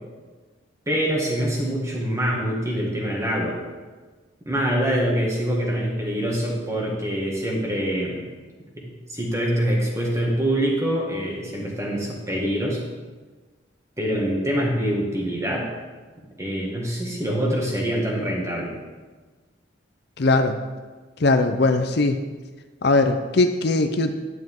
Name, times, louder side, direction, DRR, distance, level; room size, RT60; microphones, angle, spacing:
voice 1, 0.9-3.6 4.5-8.2 8.8-12.8 14.0-15.7 16.4-18.7, equal, 15° right, -2 dB, 1.9 m, -25 dB
voice 2, 20.2-20.5 21.2-22.2 22.8-24.1, left 2 dB, 55° left, 7 dB, 0.6 m, -20 dB
10.5 x 9.6 x 3.8 m, 1.3 s
head